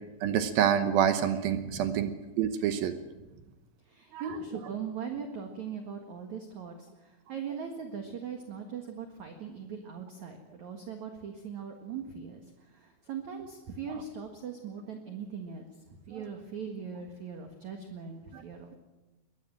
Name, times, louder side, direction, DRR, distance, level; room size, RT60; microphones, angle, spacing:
voice 1, 0.2-2.1 2.4-2.9 4.1-4.2 18.3-18.4, right 9 dB, 75° right, 9 dB, 2.3 m, -27 dB
voice 2, 1.5-2.0 3.2-3.5 3.8-18.8, right 6 dB, 55° right, 4 dB, 2.2 m, -40 dB
23.0 x 19.5 x 7.7 m, 1.1 s
omnidirectional pair, 5.4 m